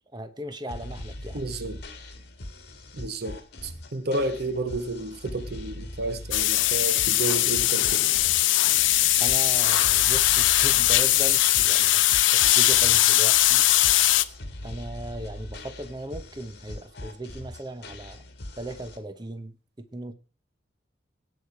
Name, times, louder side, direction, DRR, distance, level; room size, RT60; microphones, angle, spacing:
voice 1, 0.1-1.4 9.2-13.7 14.6-18.2 18.6-20.1, right 1 dB, 25° right, 0.9 m, -37 dB
sound 1, 0.7-19.0, left 1 dB, 55° left, 2.0 m, -41 dB
voice 2, 1.3-1.8 2.9-8.0, right 2 dB, 55° right, 0.9 m, -31 dB
sound 2, 6.3-14.2, left 15 dB, 80° left, 0.6 m, -20 dB
17.5 x 6.4 x 4.8 m
head